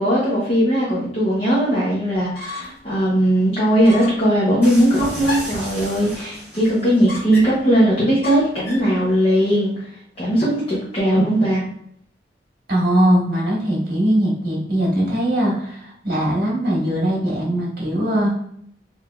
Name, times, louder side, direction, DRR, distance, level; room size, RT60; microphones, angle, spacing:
voice 1, 0.0-9.9 10.2-11.6, equal, 35° left, -7 dB, 0.7 m, -18 dB
sound 1, 2.1-2.9 3.2-3.3 3.8-4.3 5.2-5.7 7.1-7.7 8.2-8.9, left 2 dB, 70° left, 1.3 m, -32 dB
sound 2, 4.6-7.1, equal, 10° right, 1.3 m, -34 dB
voice 2, 12.7-18.3, right 1 dB, 55° right, -4 dB, 1.3 m, -20 dB
3.3 x 2.6 x 2.2 m, 0.65 s
head